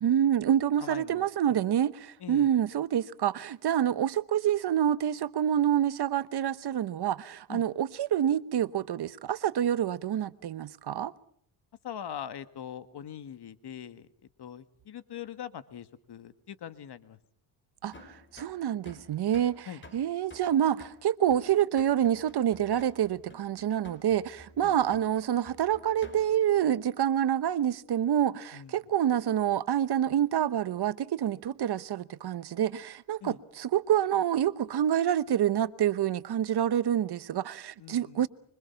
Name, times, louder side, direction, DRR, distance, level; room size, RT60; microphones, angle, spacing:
voice 1, 0.0-11.1 17.8-19.7 19.9-38.3, right 10 dB, 55° right, 1.0 m, -27 dB
voice 2, 0.8-1.6 2.2-2.5 7.5-7.7 11.8-14.1 14.4-17.2 19.7-19.8 24.6-24.8 28.5-28.8 33.2-33.4 37.8-38.3, left 9 dB, 55° left, 1.7 m, -42 dB
sound 1, 17.9-26.5, equal, 25° left, 4.1 m, -52 dB
25.5 x 24.0 x 5.8 m
cardioid pair, 100°, 49 cm